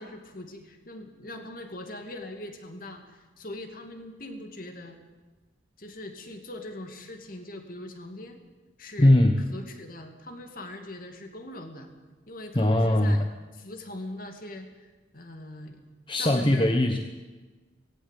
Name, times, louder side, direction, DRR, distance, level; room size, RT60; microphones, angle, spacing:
voice 1, 0.0-5.0 5.8-8.4 8.8-9.2 9.5-11.9 12.3-13.3 13.5-15.8 16.2-16.8, left 1 dB, 45° left, 4 dB, 2.6 m, -41 dB
voice 2, 9.0-9.3 12.5-13.2 16.1-17.0, left 1 dB, 25° left, 5 dB, 1.1 m, -20 dB
18.5 x 17.0 x 8.4 m, 1.3 s
head